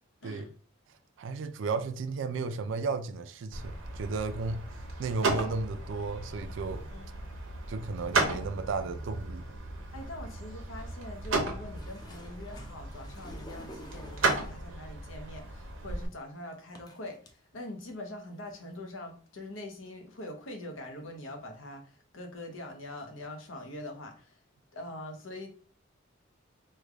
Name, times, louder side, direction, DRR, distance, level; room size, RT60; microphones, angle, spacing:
voice 1, 1.2-4.6 5.0-6.8 7.7-9.4, right 4 dB, 70° right, 0.4 m, -34 dB
sound 1, 3.5-16.1, right 3 dB, 85° right, 0.8 m, -35 dB
voice 2, 6.9-7.3 9.9-24.4 24.7-25.5, left 1 dB, 90° left, 0.8 m, -43 dB
sound 2, 11.7-14.7 15.7-15.8 16.8-17.3 17.9-18.0 18.4-18.7 19.5-19.6, left 1 dB, 20° left, 0.5 m, -50 dB
3.2 x 2.2 x 3.6 m
head